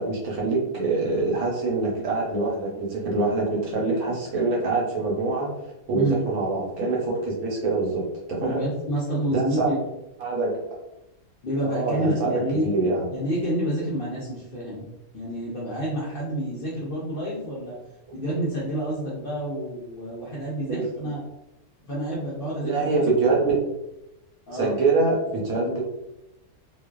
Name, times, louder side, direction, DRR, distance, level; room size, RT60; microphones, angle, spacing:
voice 1, 0.0-5.5 5.9-8.6 9.3-9.7 10.2-10.5 11.6-13.0 20.7-20.9 22.6-23.6 24.5-25.8, right 3 dB, 75° right, -2 dB, 1.2 m, -25 dB
voice 2, 8.4-9.8 11.4-12.7 13.1-14.9 15.1-17.8 18.1-21.2 21.8-23.0 24.5-24.8, right 1 dB, 55° left, -7 dB, 0.7 m, -28 dB
2.5 x 2.4 x 2.2 m, 0.88 s
omnidirectional pair, 1.5 m